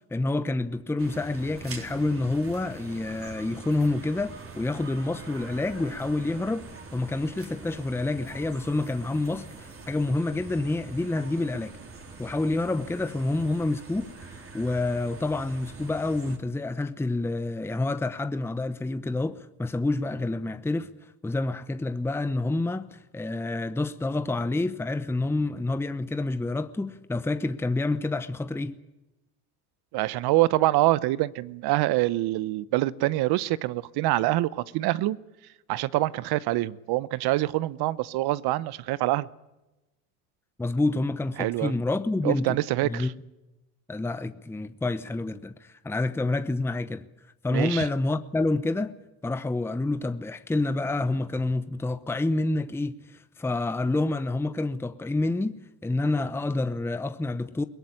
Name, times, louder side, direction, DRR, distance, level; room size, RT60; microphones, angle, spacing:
voice 1, 0.0-11.7 12.2-14.1 14.5-20.9 21.2-28.7 40.6-42.6 42.8-43.1 43.9-47.1 47.4-48.9 49.2-57.6, left 2 dB, 5° left, 0.8 m, -28 dB
sound 1, 1.0-16.4, right 3 dB, 30° right, 3.9 m, -44 dB
voice 2, 29.9-35.2 35.7-39.3 41.4-41.7 42.2-43.1 47.5-47.9, right 17 dB, 60° right, 0.9 m, -25 dB
22.0 x 17.5 x 9.7 m
supercardioid pair, 95°, 44 cm